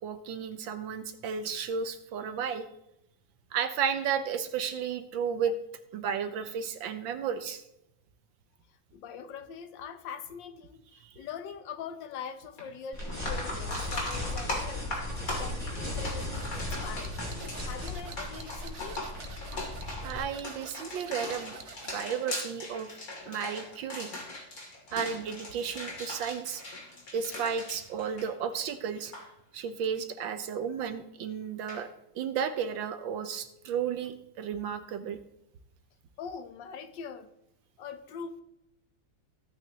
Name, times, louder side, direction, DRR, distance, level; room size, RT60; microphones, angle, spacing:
voice 1, 0.0-2.7 3.5-5.6 5.9-7.6 11.0-11.1 20.0-21.6 21.9-22.9 23.3-24.1 24.9-26.6 27.1-29.1 29.5-31.9 32.1-35.2, right 7 dB, 90° right, 9 dB, 1.6 m, -33 dB
voice 2, 8.9-17.2 17.6-19.1 36.2-37.3 37.8-38.4, left 6 dB, 75° left, 9 dB, 1.6 m, -42 dB
sound 1, 12.6-12.7 13.1-28.7 29.0-29.2 31.7-31.8, left 1 dB, 50° left, 3.3 m, -39 dB
sound 2, 12.9-20.2, left 1 dB, 10° left, 4.4 m, -37 dB
sound 3, 15.1-22.1, right 5 dB, 45° right, 1.1 m, -49 dB
15.5 x 9.1 x 2.9 m, 0.81 s
omnidirectional pair, 2.0 m